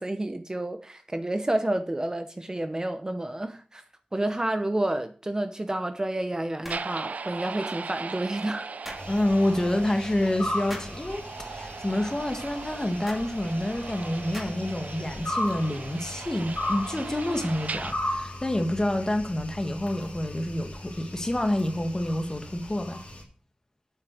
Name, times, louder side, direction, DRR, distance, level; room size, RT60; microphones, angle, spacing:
voice 1, 0.0-3.8 4.1-8.7, right 1 dB, 25° right, 0.8 m, -30 dB
sound 1, 6.6-6.9 8.8-9.1 10.7-11.0 13.0-13.3 14.3-14.7, equal, 5° right, 2.5 m, -40 dB
sound 2, 6.7-17.9, right 4 dB, 85° right, 0.4 m, -39 dB
sound 3, 9.0-23.2, left 1 dB, 60° left, 3.1 m, -37 dB
voice 2, 9.1-23.0, left 1 dB, 25° left, 1.8 m, -28 dB
8.2 x 5.7 x 7.6 m
wide cardioid pair, 75°, 3 cm